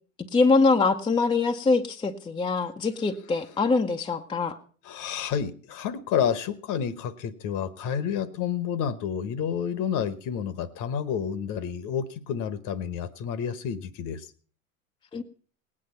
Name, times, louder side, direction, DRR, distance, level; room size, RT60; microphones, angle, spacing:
voice 1, 0.3-4.6 15.1-15.2, left 3 dB, 10° left, 5 dB, 0.7 m, -23 dB
voice 2, 4.8-14.3, left 8 dB, 45° left, 17 dB, 1.1 m, -30 dB
18.0 x 8.7 x 5.6 m, 0.42 s
hypercardioid pair, 95°, 42 cm